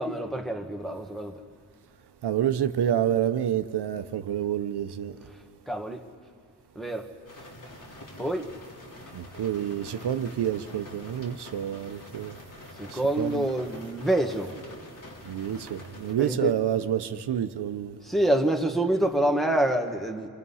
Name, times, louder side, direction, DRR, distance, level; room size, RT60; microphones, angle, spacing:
voice 1, 0.0-1.3 5.7-6.0 6.7-7.1 8.2-8.5 12.8-14.5 16.2-16.5 18.0-20.3, right 1 dB, ahead, 1.6 m, -26 dB
voice 2, 2.2-5.2 9.1-12.4 12.9-13.5 15.2-18.0, right 10 dB, 80° right, 0.8 m, -28 dB
sound 1, 7.3-16.1, left 1 dB, 50° left, 3.1 m, -46 dB
27.0 x 27.0 x 5.6 m
cardioid pair, 90°, 40 cm